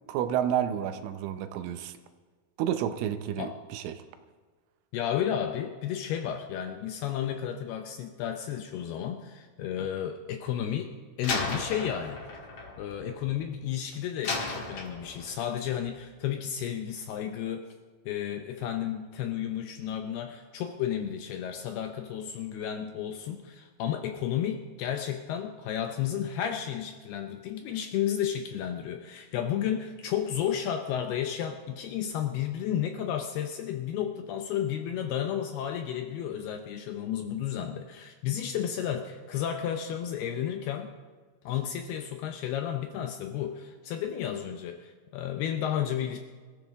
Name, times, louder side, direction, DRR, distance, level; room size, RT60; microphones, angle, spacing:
voice 1, 0.1-1.9 2.6-4.0, right 10 dB, 85° right, 9 dB, 3.3 m, -30 dB
voice 2, 4.9-10.9 11.2-12.2 12.8-17.7 18.1-40.9 41.5-46.2, left 9 dB, 80° left, 5 dB, 2.3 m, -32 dB
Slam, 11.2-13.7 14.2-15.5, left 3 dB, 45° left, 2.2 m, -35 dB
25.5 x 14.0 x 3.6 m, 1.5 s
omnidirectional pair, 5.5 m